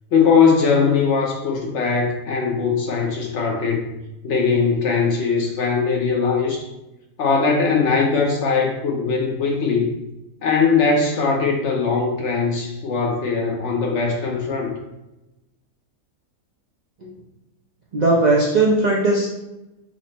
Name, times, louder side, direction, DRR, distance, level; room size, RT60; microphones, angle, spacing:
voice 1, 0.1-3.9 4.2-6.7 7.2-9.9 10.4-14.7, left 5 dB, 60° left, 1 dB, 0.8 m, -20 dB
voice 2, 17.9-19.3, right 2 dB, 65° right, -3 dB, 0.4 m, -18 dB
5.7 x 2.0 x 4.2 m, 0.97 s
omnidirectional pair, 1.6 m